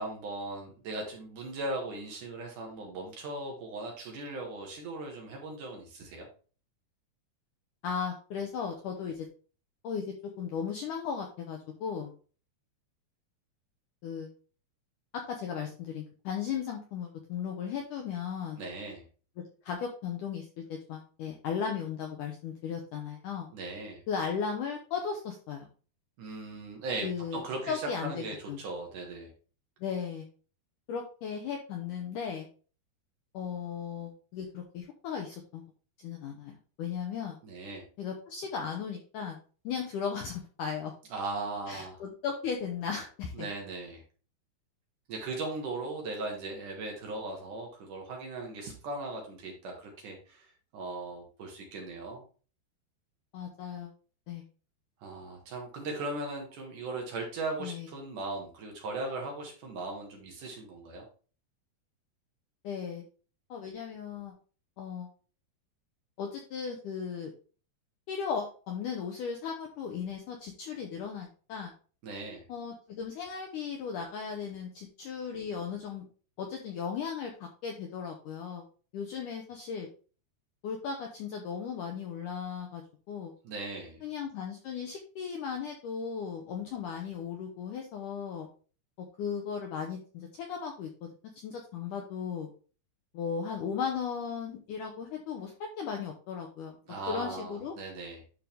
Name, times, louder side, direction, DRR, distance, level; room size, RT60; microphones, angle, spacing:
voice 1, 0.0-6.3 18.6-19.0 23.5-24.0 26.2-29.3 37.4-37.8 41.1-42.0 43.3-44.0 45.1-52.2 55.0-61.0 72.0-72.4 83.4-84.0 96.9-98.2, right 2 dB, 60° right, 1 dB, 2.7 m, -38 dB
voice 2, 7.8-9.3 9.8-12.1 14.0-14.3 15.1-18.6 19.6-23.5 24.1-25.7 27.0-27.4 27.7-28.6 29.8-30.3 30.9-32.5 33.3-35.6 36.0-37.4 38.0-39.4 39.6-40.9 41.7-43.5 53.3-53.9 54.3-54.5 57.6-57.9 62.6-63.0 63.5-64.3 64.8-65.1 66.2-67.3 68.1-71.7 72.5-76.1 76.4-78.7 78.9-79.9 80.6-82.8 83.1-83.3 84.0-88.5 89.0-91.1 91.4-92.5 93.1-96.8 97.1-97.8, left 6 dB, 75° left, 2 dB, 1.9 m, -36 dB
11.5 x 3.9 x 3.5 m, 0.39 s
omnidirectional pair, 4.8 m